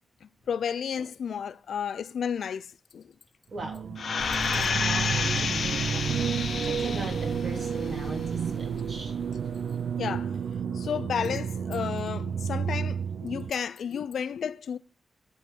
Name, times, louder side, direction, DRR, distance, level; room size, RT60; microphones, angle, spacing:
voice 1, 0.2-2.7 2.9-3.0 10.0-14.8, left 7 dB, 85° left, 0.5 m, -32 dB
voice 2, 3.5-3.9 4.5-9.1, right 1 dB, 45° right, 3.3 m, -39 dB
sound 1, 3.6-13.5, right 7 dB, 85° right, 0.4 m, -31 dB
sound 2, 4.0-7.4 7.8-7.9, left 6 dB, 65° left, 0.8 m, -29 dB
sound 3, 4.2-10.5, left 3 dB, 30° left, 0.6 m, -42 dB
10.5 x 4.6 x 6.3 m
wide cardioid pair, 145°, 0 cm